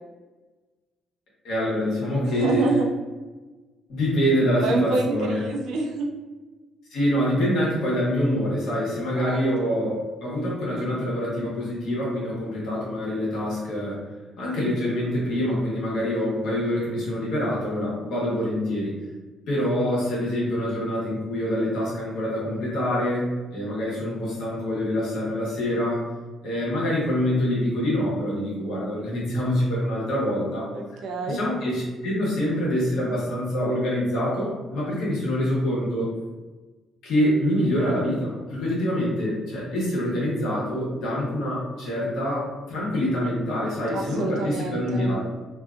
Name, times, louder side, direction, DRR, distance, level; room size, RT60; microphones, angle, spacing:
voice 1, 1.4-2.7 3.9-5.4 6.9-14.0 14.4-19.0 19.5-26.0 26.4-30.7 31.3-36.1 37.0-45.2, equal, 60° left, -5 dB, 1.0 m, -25 dB
voice 2, 2.2-2.9 4.6-6.1 9.1-9.4 30.7-31.4 43.9-45.1, right 3 dB, 65° right, 0 dB, 0.4 m, -27 dB
2.7 x 2.3 x 2.4 m, 1.2 s
cardioid pair, 175°, 0 cm